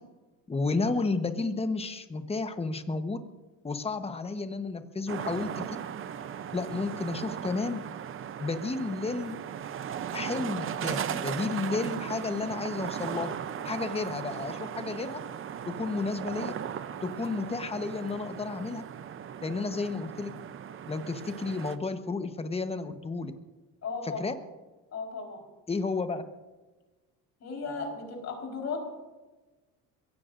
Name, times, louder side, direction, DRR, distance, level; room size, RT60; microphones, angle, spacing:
voice 1, 0.5-3.2 3.6-5.8 6.5-7.8 8.4-9.4 10.1-13.3 13.6-15.2 15.7-16.5 17.0-18.8 19.4-20.3 20.9-23.3 24.0-24.3 25.7-26.2, left 3 dB, 15° left, 9 dB, 1.0 m, -32 dB
sound 1, 5.1-21.8, right 8 dB, 35° right, 0.6 m, -37 dB
voice 2, 23.8-24.2 24.9-25.4 27.4-28.8, left 4 dB, 45° left, 1 dB, 4.4 m, -35 dB
23.0 x 17.0 x 2.6 m, 1.2 s
cardioid pair, 120°, 37 cm